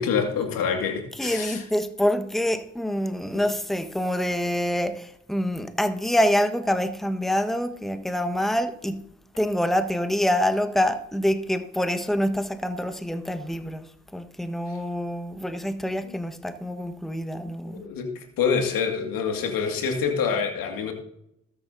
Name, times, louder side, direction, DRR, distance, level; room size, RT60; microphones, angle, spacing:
voice 1, 0.0-1.7 3.3-3.4 16.0-16.1 17.6-20.9, left 6 dB, 70° left, 2.3 m, -26 dB
voice 2, 1.2-9.0 9.4-13.8 14.1-17.8, equal, ahead, 1.4 m, -26 dB
20.5 x 8.7 x 2.8 m
hypercardioid pair, 40°, 36 cm